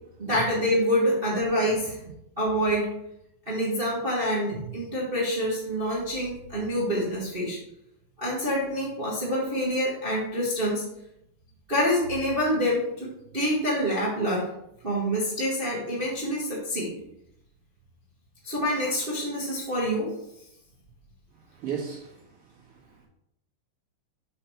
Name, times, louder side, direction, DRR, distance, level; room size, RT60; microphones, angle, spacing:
voice 1, 0.2-1.9 2.4-2.9 3.5-7.6 8.2-10.8 11.7-13.1 13.3-14.4 14.8-16.9 18.4-20.1, equal, 25° right, -6 dB, 1.2 m, -26 dB
voice 2, 21.3-23.1, right 7 dB, 50° right, -6 dB, 2.4 m, -37 dB
6.6 x 5.5 x 4.6 m, 0.80 s
omnidirectional pair, 4.0 m